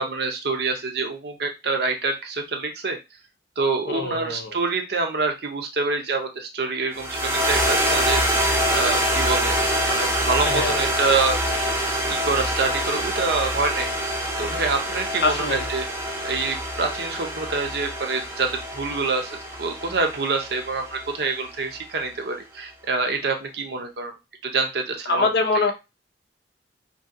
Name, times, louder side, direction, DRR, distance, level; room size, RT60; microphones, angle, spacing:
voice 1, 0.0-3.0 3.6-11.4 12.1-13.9 14.4-15.9 16.2-24.1 24.4-25.3, right 4 dB, 55° right, 0.6 m, -26 dB
voice 2, 3.9-4.6 10.4-10.8 15.2-15.6 25.1-25.7, left 3 dB, 55° left, 0.5 m, -24 dB
sound 1, 6.9-21.4, equal, 15° right, 0.6 m, -25 dB
2.7 x 2.6 x 2.5 m
head